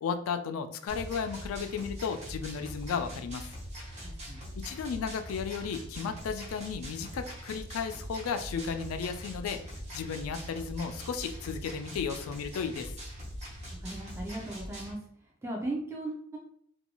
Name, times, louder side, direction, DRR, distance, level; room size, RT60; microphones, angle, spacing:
voice 1, 0.0-3.4 4.6-12.9, left 6 dB, 75° left, 8 dB, 0.3 m, -34 dB
sound 1, 0.9-14.9, equal, 30° right, 0.9 m, -42 dB
voice 2, 4.0-4.4 13.8-15.0 15.4-16.4, right 2 dB, 10° right, -2 dB, 0.4 m, -37 dB
2.6 x 2.3 x 2.9 m, 0.66 s
head